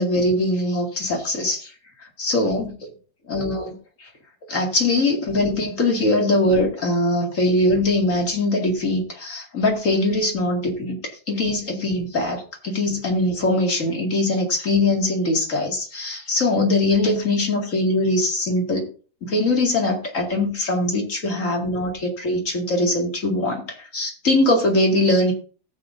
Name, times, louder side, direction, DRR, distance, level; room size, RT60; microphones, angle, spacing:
voice 1, 0.0-1.7 2.2-2.7 3.3-3.7 4.5-11.0 11.3-18.9 19.2-25.3, left 2 dB, 50° left, 1 dB, 2.6 m, -21 dB
18.0 x 7.5 x 2.6 m, 0.38 s
omnidirectional pair, 1.8 m